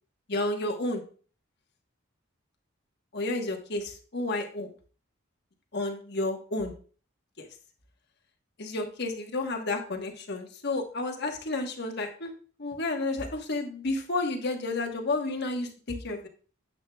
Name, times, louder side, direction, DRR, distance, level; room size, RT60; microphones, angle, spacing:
voice 1, 0.3-1.0 3.1-4.7 5.7-6.7 7.4-7.5 8.6-12.3 12.6-16.3, left 2 dB, 55° left, 3 dB, 1.2 m, -31 dB
9.9 x 7.6 x 2.3 m, 0.40 s
head